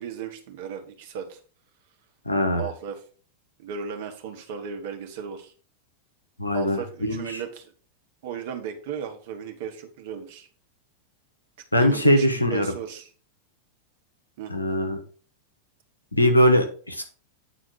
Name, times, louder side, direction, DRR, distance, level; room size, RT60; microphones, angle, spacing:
voice 1, 0.0-1.4 2.6-3.0 3.6-5.5 6.5-7.7 8.2-10.5 11.8-13.1 14.4-14.5, right 7 dB, 50° right, 5 dB, 1.4 m, -35 dB
voice 2, 2.2-2.6 6.4-7.2 11.7-12.7 14.5-15.0 16.1-17.0, equal, 85° left, 5 dB, 1.2 m, -21 dB
8.7 x 4.3 x 4.7 m, 0.41 s
figure-of-eight pair, 90°, 0 cm